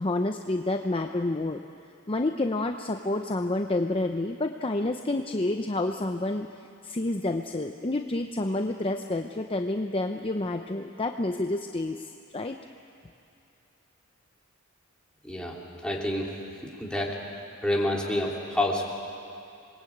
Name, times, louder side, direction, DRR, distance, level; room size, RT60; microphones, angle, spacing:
voice 1, 0.0-1.6 2.1-6.5 6.8-12.6, left 2 dB, 25° left, 5 dB, 0.8 m, -29 dB
voice 2, 15.2-15.5 15.8-16.3 16.8-17.1 17.6-18.9, left 1 dB, 5° left, -3 dB, 3.4 m, -28 dB
28.0 x 21.0 x 8.7 m, 2.6 s
head